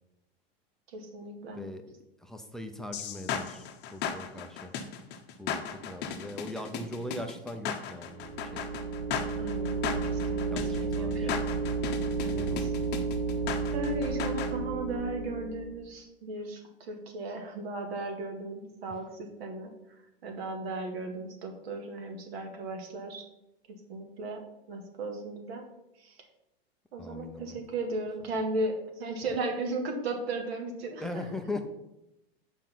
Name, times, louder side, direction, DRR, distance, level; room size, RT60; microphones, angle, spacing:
voice 1, 0.9-1.6 9.4-11.4 12.2-12.7 13.7-19.7 20.2-23.2 23.7-25.6 26.0-26.2 26.9-31.2, right 2 dB, 70° right, 3 dB, 2.0 m, -36 dB
voice 2, 1.6-1.9 2.2-3.6 3.9-4.7 5.4-8.6 10.5-11.3 12.3-12.7 27.0-27.6 31.0-31.7, left 1 dB, ahead, 6 dB, 0.4 m, -40 dB
sound 1, 2.9-14.5, left 7 dB, 35° left, 0.9 m, -36 dB
sound 2, 8.1-15.8, right 4 dB, 35° right, 1.3 m, -32 dB
7.3 x 5.1 x 5.8 m, 0.90 s
hypercardioid pair, 135°, 32 cm